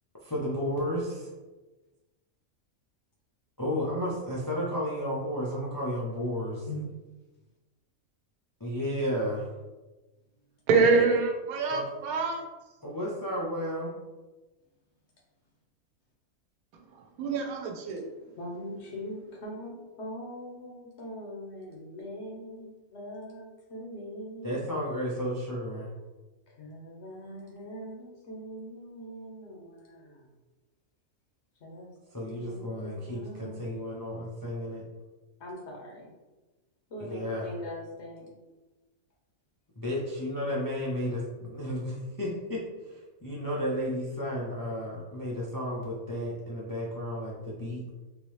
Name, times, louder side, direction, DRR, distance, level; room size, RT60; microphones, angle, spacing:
voice 1, 0.2-1.3 3.6-6.7 8.6-9.5 11.7-11.8 12.8-13.9 24.4-25.9 32.1-34.8 37.0-37.5 39.8-47.8, equal, 30° left, -5 dB, 0.4 m, -33 dB
voice 2, 10.7-12.4 17.2-18.0, right 4 dB, 80° right, 2 dB, 1.1 m, -25 dB
voice 3, 18.4-24.6 26.6-30.3 31.6-31.9 32.2-33.7 35.4-36.1 36.9-38.3, equal, 55° left, -2 dB, 1.0 m, -42 dB
3.7 x 2.8 x 3.1 m, 1.2 s
omnidirectional pair, 1.5 m